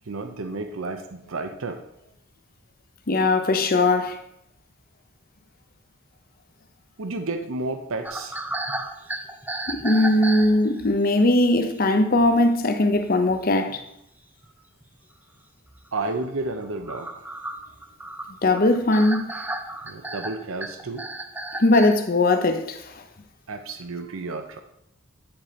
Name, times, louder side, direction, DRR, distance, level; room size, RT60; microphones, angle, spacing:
voice 1, 0.1-1.8 7.0-8.4 15.9-17.3 19.8-21.0 23.5-24.6, right 3 dB, 70° right, 0.7 m, -31 dB
voice 2, 3.1-4.2 9.7-13.8 18.4-19.3 21.6-22.8, left 2 dB, 40° left, 0.7 m, -20 dB
sound 1, 8.0-11.0 11.8-11.9 12.2-12.3 12.9-13.0 13.3-13.8 14.4-14.5 14.8-14.9 15.7-15.8 16.2-22.0, right 1 dB, 10° right, 0.5 m, -34 dB
8.9 x 4.3 x 5.1 m
head